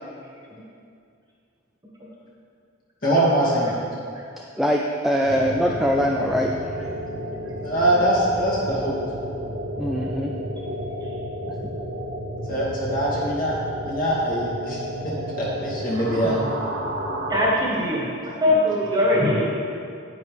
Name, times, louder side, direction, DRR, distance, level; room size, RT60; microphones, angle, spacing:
voice 1, 3.0-3.7 7.6-9.0 12.5-13.5 13.9-14.8 15.3-16.4, right 1 dB, 45° left, -7 dB, 2.5 m, -22 dB
voice 2, 4.6-6.5 9.8-10.3 16.4-16.5, equal, ahead, 0 dB, 0.3 m, -22 dB
sound 1, 5.3-17.6, equal, 55° right, 0.9 m, -32 dB
voice 3, 17.3-19.4, left 1 dB, 20° right, -5 dB, 1.6 m, -21 dB
9.4 x 9.0 x 3.4 m, 2.3 s
head